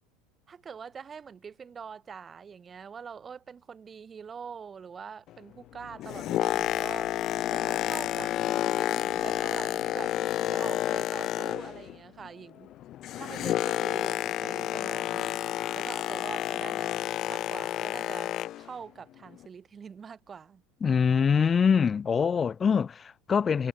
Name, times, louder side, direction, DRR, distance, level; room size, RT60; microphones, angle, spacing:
voice 1, 0.5-7.1 7.5-10.2 10.5-12.7 13.1-20.6, right 6 dB, 25° right, 6.1 m, -44 dB
sound 1, 5.5-13.1, left 18 dB, 80° left, 5.7 m, -57 dB
Boat Water vehicle, 5.8-12.0 12.2-18.7 19.3-19.5, left 13 dB, 45° left, 0.5 m, -30 dB
voice 2, 20.8-23.7, left 6 dB, 25° left, 1.3 m, -24 dB
supercardioid pair, 115°, 0 cm